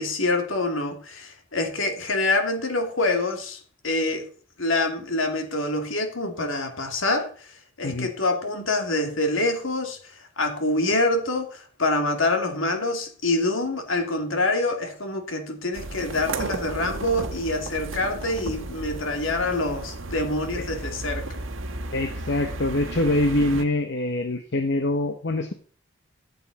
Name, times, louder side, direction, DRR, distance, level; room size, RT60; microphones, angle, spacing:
voice 1, 0.0-4.3 4.6-7.5 7.8-21.4, left 2 dB, 70° left, 2.7 m, -26 dB
sound 1, 15.7-23.6, right 2 dB, 70° right, 1.4 m, -34 dB
voice 2, 21.9-25.5, left 1 dB, 55° left, 1.0 m, -24 dB
14.5 x 8.2 x 4.1 m
head